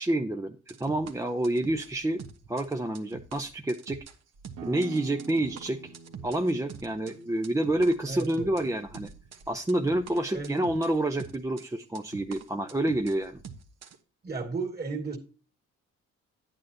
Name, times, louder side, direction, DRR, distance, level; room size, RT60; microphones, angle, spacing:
voice 1, 0.0-2.2 2.5-4.0 4.6-5.9 6.2-9.1 9.5-13.4, right 1 dB, 10° right, 0.6 m, -28 dB
sound 1, 0.7-7.1 7.4-14.0, right 6 dB, 60° right, 1.2 m, -46 dB
sound 2, 4.5-9.9, right 7 dB, 90° right, 1.3 m, -47 dB
voice 2, 8.0-8.5 10.3-10.5 14.2-15.2, right 4 dB, 30° right, 2.3 m, -34 dB
10.5 x 9.0 x 2.8 m
cardioid pair, 90°, 30 cm